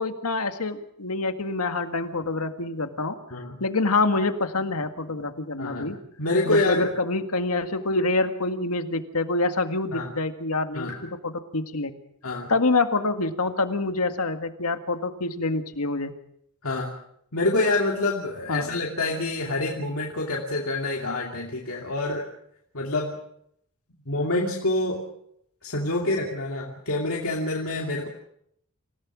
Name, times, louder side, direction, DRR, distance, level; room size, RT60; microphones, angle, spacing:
voice 1, 0.0-3.2 3.6-6.0 6.5-10.9 11.2-11.9 12.5-16.1 18.5-18.7, left 3 dB, 85° left, 8 dB, 1.8 m, -26 dB
voice 2, 5.6-7.0 9.9-10.1 10.7-11.0 12.2-12.5 16.6-16.9 17.3-22.2 22.7-23.2 24.1-25.0 25.6-28.1, left 2 dB, 65° left, -1 dB, 2.6 m, -27 dB
27.5 x 17.0 x 6.2 m, 0.71 s
head